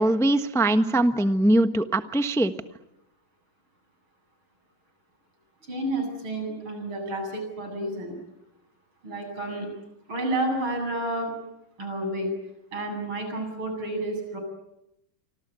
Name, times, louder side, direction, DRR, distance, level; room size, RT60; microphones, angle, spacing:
voice 1, 0.0-2.5, right 1 dB, ahead, 9 dB, 0.7 m, -21 dB
voice 2, 5.6-8.2 9.0-9.7 10.1-11.3 11.8-12.3 12.7-14.4, right 1 dB, 90° right, 4 dB, 9.1 m, -30 dB
28.0 x 25.5 x 8.3 m, 0.83 s
omnidirectional pair, 2.2 m